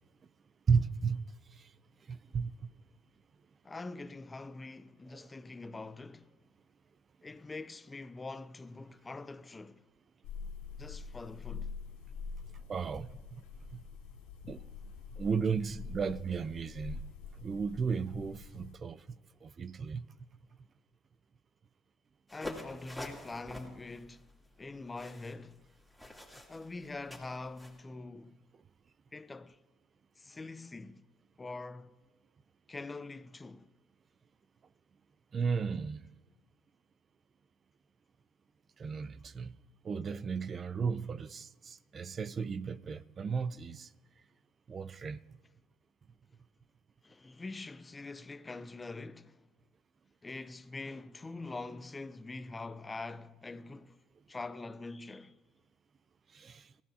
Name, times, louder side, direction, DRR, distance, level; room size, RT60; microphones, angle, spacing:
voice 1, 0.7-1.2 2.1-2.5 12.7-13.1 14.5-14.6 15.2-17.0 17.4-19.0 19.4-20.0 35.3-36.0 38.8-39.5 39.8-43.9 44.7-45.2 56.3-56.6, right 5 dB, 40° right, 0.6 m, -34 dB
voice 2, 3.6-6.3 7.2-9.8 10.8-11.7 22.3-24.3 24.6-25.7 26.5-28.4 29.1-29.6 30.2-31.0 31.4-31.9 32.7-33.7 47.0-49.4 50.2-54.0 54.3-55.4, left 3 dB, 20° left, 0.7 m, -44 dB
sound 1, 10.2-18.7, left 5 dB, 85° left, 2.1 m, -45 dB
sound 2, 22.3-27.8, left 1 dB, ahead, 3.0 m, -47 dB
25.0 x 15.0 x 2.8 m
supercardioid pair, 75°, 0 cm